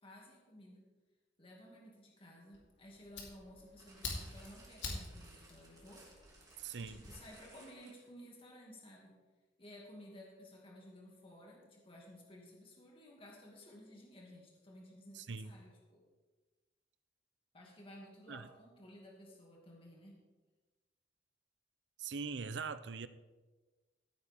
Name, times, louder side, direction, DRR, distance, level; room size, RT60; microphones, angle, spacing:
voice 1, 0.0-0.8 1.4-6.1 6.7-9.1 9.6-16.0 17.5-20.2, left 1 dB, 30° left, -2 dB, 2.3 m, -55 dB
Fire, 2.5-7.1, left 3 dB, 90° left, 2.8 m, -47 dB
sound 1, 3.8-8.2 9.0-9.1, right 2 dB, 20° right, 3.0 m, -61 dB
voice 2, 6.6-7.0 15.1-15.5 18.3-18.5 22.0-23.1, right 5 dB, 70° right, 14 dB, 0.6 m, -42 dB
16.0 x 9.0 x 3.6 m, 1.3 s
head